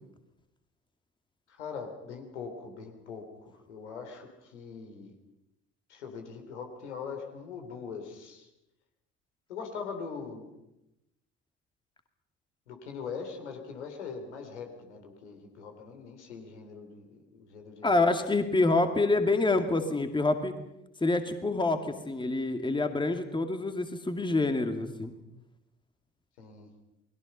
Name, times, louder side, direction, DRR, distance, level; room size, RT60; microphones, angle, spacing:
voice 1, 1.5-5.2 5.9-8.5 9.5-10.5 12.7-18.0 26.4-26.7, left 5 dB, 75° left, 4 dB, 3.6 m, -42 dB
voice 2, 17.8-20.5 21.0-25.1, left 2 dB, 15° left, 7 dB, 2.3 m, -27 dB
29.5 x 21.0 x 5.5 m, 0.89 s
figure-of-eight pair, 55°, 35 cm